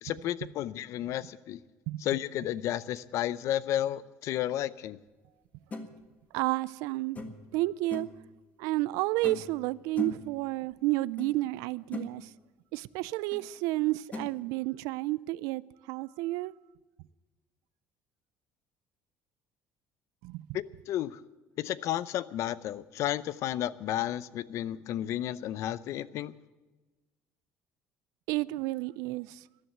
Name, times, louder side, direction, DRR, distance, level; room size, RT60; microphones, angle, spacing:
voice 1, 0.0-1.6 2.0-5.0 20.5-21.2 21.6-26.3, left 12 dB, 60° left, 0.6 m, -32 dB
sound 1, 5.7-5.9 7.1-7.5 7.9-8.2 9.2-9.6 10.0-10.3 11.2-11.3 11.7-12.1 13.3-13.4 14.1-14.3, left 2 dB, 25° left, 1.6 m, -38 dB
voice 2, 6.3-7.2 7.5-8.1 8.6-12.3 12.7-15.6 15.9-16.5 20.2-20.5 28.3-29.4, right 19 dB, 85° right, 0.4 m, -31 dB
14.0 x 11.0 x 8.0 m
cardioid pair, 130°, 6 cm